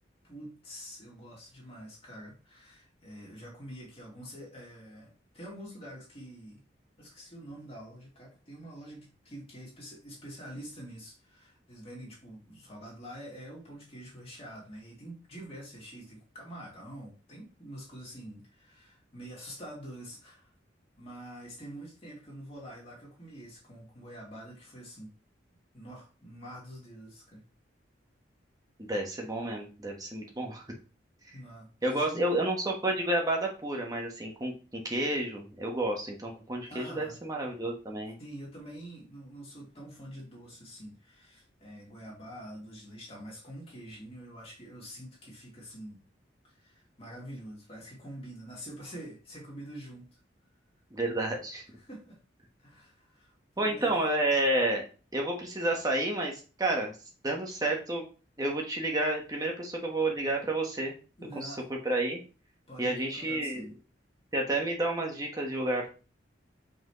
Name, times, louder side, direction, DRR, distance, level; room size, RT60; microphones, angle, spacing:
voice 1, 0.2-6.6 7.0-20.5 21.0-25.1 25.7-27.4 31.3-32.5 36.7-37.2 38.2-46.0 46.4-50.2 51.8-52.2 52.6-53.9 61.2-61.6 62.7-63.7, right 1 dB, 30° left, -4 dB, 2.6 m, -46 dB
voice 2, 28.8-30.6 31.8-38.2 50.9-51.6 53.6-54.8 55.1-56.9 57.2-58.0 58.4-60.9 61.4-61.5 61.8-62.2 62.8-63.6 64.3-65.9, right 1 dB, 20° right, 0 dB, 1.3 m, -30 dB
5.8 x 5.1 x 3.1 m, 0.35 s
head